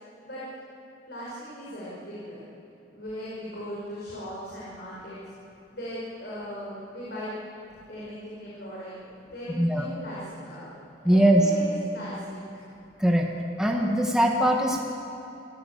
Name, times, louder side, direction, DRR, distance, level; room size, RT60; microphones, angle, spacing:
voice 1, 1.1-2.4 2.9-5.2 5.7-7.3 7.9-8.9 9.2-10.7 11.0-12.4, equal, 60° left, -7 dB, 5.7 m, -38 dB
voice 2, 11.0-11.5 13.0-13.3 13.6-14.8, right 1 dB, 5° right, 0 dB, 1.5 m, -21 dB
26.5 x 15.5 x 8.3 m, 2.7 s
head